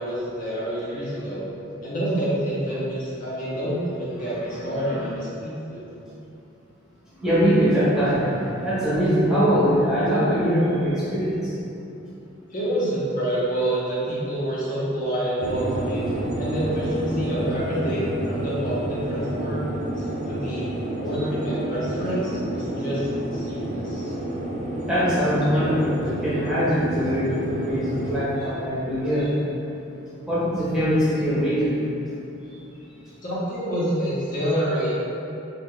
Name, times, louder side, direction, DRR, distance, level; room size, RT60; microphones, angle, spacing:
voice 1, 0.0-1.4 1.8-5.8 12.5-16.1 16.4-19.6 20.2-20.6 21.0-24.0 33.2-34.9, right 1 dB, 40° left, -8 dB, 0.6 m, -27 dB
voice 2, 4.5-5.0 7.2-11.5 24.9-29.3 30.3-31.7, equal, 5° right, -11 dB, 0.7 m, -22 dB
sound 1, 15.4-28.2, right 1 dB, 35° right, 0.3 m, -29 dB
2.6 x 2.1 x 3.6 m, 2.8 s
head